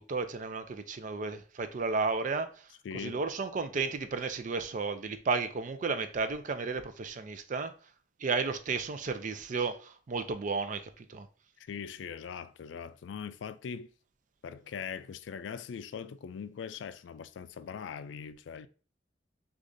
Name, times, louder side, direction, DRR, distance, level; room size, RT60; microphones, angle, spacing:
voice 1, 0.0-2.5 2.9-7.7 8.2-11.3, right 4 dB, 45° right, 0.4 m, -33 dB
voice 2, 2.8-3.2 11.6-13.9 14.4-18.7, left 7 dB, 85° left, 0.3 m, -41 dB
6.3 x 2.4 x 2.6 m
head